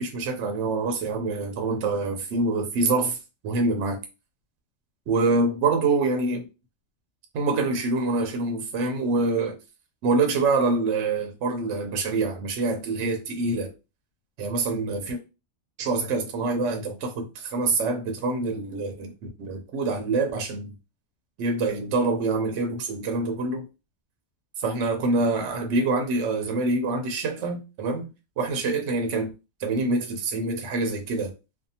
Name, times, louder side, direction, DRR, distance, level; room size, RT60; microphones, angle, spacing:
voice 1, 0.0-3.2 3.4-4.0 5.1-6.4 7.3-9.6 10.0-13.7 14.4-15.2 15.8-19.1 19.4-20.7 21.4-23.6 24.6-28.1 28.4-29.3 29.6-31.3, right 3 dB, 65° right, 0.9 m, -25 dB
2.6 x 2.3 x 2.7 m
omnidirectional pair, 1.4 m